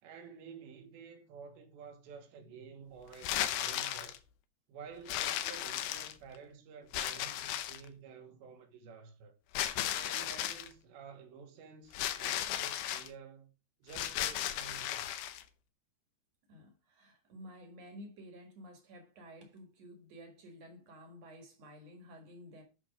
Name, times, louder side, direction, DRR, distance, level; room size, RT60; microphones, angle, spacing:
voice 1, 0.0-4.2 4.7-9.4 9.9-13.5 13.8-15.1, right 6 dB, 80° right, 3.7 m, -51 dB
sound 1, 3.1-4.2 5.1-6.4 6.9-7.9 9.5-10.7 11.9-13.1 13.9-15.4, left 12 dB, 75° left, 2.5 m, -35 dB
voice 2, 16.5-22.6, equal, 50° right, 2.1 m, -52 dB
11.0 x 5.0 x 5.0 m
omnidirectional pair, 5.0 m